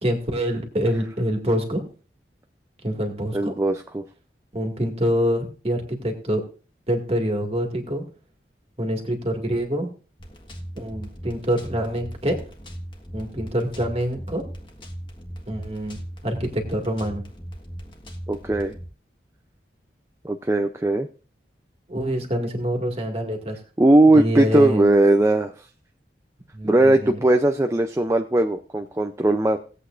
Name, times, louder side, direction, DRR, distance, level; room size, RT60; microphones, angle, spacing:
voice 1, 0.0-1.8 2.8-3.5 4.5-6.4 6.9-8.0 8.8-9.9 10.8-12.4 13.1-14.4 15.5-16.0 16.2-17.2 21.9-23.6 24.1-24.9 26.5-27.2, equal, 35° right, 2 dB, 2.0 m, -26 dB
voice 2, 3.3-4.1 18.3-18.7 20.2-21.1 23.8-25.7 26.6-29.6, right 1 dB, 15° right, 5 dB, 0.5 m, -19 dB
sound 1, 10.2-18.9, equal, 25° left, 1.5 m, -38 dB
18.5 x 8.2 x 2.5 m, 0.38 s
head